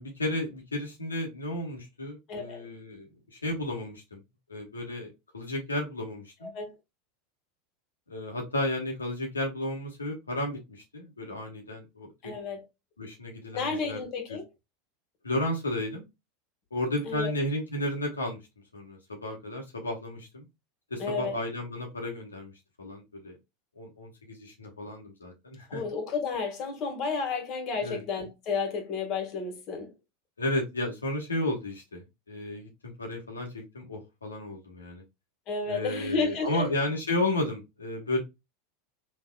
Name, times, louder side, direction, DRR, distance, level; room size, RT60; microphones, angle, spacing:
voice 1, 0.0-4.2 4.5-6.5 8.1-12.3 13.0-14.0 14.3-14.4 15.2-16.0 16.7-18.4 18.7-20.4 20.9-22.5 22.8-23.4 23.8-25.8 27.8-28.0 30.4-32.0 32.3-35.0 35.7-38.2, left 1 dB, 90° left, 1.2 m, -33 dB
voice 2, 2.3-2.7 6.4-6.7 12.2-12.7 13.5-14.4 17.0-17.3 21.0-21.4 25.7-29.9 35.5-36.7, left 4 dB, 45° left, 1.6 m, -32 dB
3.5 x 3.3 x 2.2 m
hypercardioid pair, 90°, 0 cm